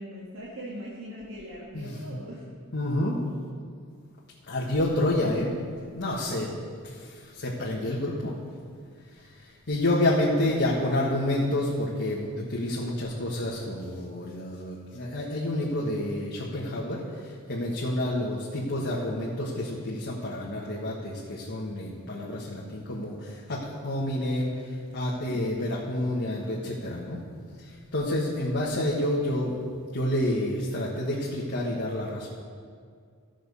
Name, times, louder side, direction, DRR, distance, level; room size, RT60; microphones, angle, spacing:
voice 1, 0.0-2.5, equal, 60° right, -4 dB, 1.5 m, -40 dB
voice 2, 1.7-2.2 2.7-3.2 4.5-5.5 5.9-6.5 6.8-8.3 9.4-24.5 24.9-27.2 27.6-29.6 29.9-32.3, left 1 dB, 50° left, -5 dB, 1.5 m, -29 dB
14.5 x 6.5 x 5.4 m, 2.1 s
head